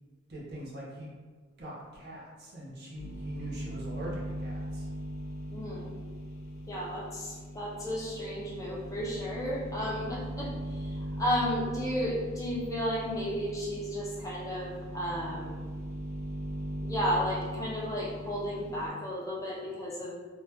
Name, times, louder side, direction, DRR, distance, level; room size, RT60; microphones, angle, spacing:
voice 1, 0.3-1.1 1.6-4.9, right 1 dB, 50° right, -5 dB, 0.7 m, -42 dB
sound 1, 2.9-18.9, equal, 85° left, 0.7 m, -39 dB
voice 2, 5.5-5.9 6.7-15.6 16.8-20.1, equal, 15° left, -5 dB, 0.4 m, -33 dB
2.8 x 2.2 x 3.2 m, 1.4 s
head